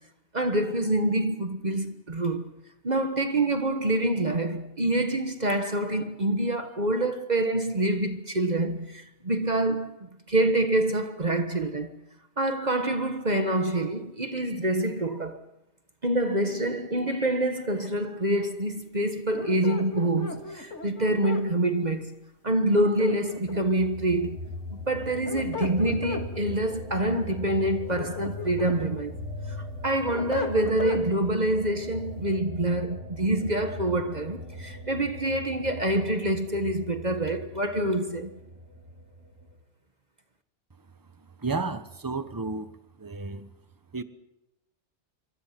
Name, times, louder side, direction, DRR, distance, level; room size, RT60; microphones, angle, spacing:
voice 1, 0.3-2.5 2.8-12.0 12.4-15.4 16.0-22.1 22.4-24.4 24.7-29.2 29.8-38.3, right 1 dB, 35° right, 1.5 m, -26 dB
sound 1, 19.3-21.5 22.7-23.8 25.0-26.3 27.7-28.8 29.3-31.0, left 4 dB, 85° left, 2.6 m, -35 dB
sound 2, 23.4-39.6, left 1 dB, 80° right, 4.1 m, -40 dB
voice 2, 41.4-42.7 43.0-43.5 43.9-44.0, right 3 dB, 20° right, 1.1 m, -32 dB
26.5 x 24.5 x 6.0 m
omnidirectional pair, 1.2 m